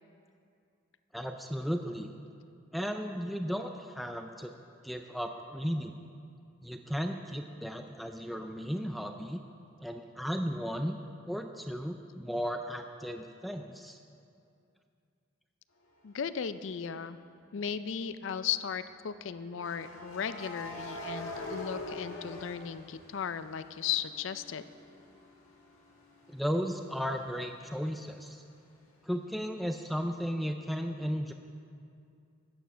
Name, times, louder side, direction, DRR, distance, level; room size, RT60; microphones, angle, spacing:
voice 1, 1.1-2.1 2.7-4.5 4.8-5.9 6.6-9.4 9.8-11.0 11.3-14.0 26.3-28.4 29.0-31.3, equal, ahead, 5 dB, 0.3 m, -35 dB
voice 2, 16.0-17.2 17.5-24.6, left 8 dB, 65° left, 13 dB, 0.4 m, -36 dB
sound 1, 16.3-16.5 19.6-23.5 23.9-27.4, left 1 dB, 90° left, 2.0 m, -44 dB
13.5 x 9.2 x 5.7 m, 2.4 s
head